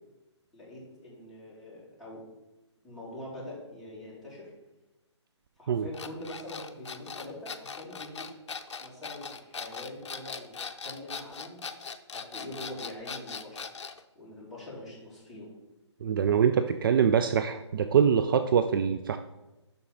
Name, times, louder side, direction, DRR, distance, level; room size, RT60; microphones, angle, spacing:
voice 1, 0.5-2.2 2.8-4.5 5.6-8.3 8.8-10.5 10.8-11.6 12.1-13.6 14.1-15.5, left 1 dB, ahead, -8 dB, 2.5 m, -44 dB
sound 1, 5.9-14.0, left 5 dB, 70° left, 0.6 m, -40 dB
voice 2, 16.0-19.2, right 7 dB, 45° right, 9 dB, 0.4 m, -24 dB
6.9 x 5.9 x 3.9 m, 1.0 s
figure-of-eight pair, 135°, 15 cm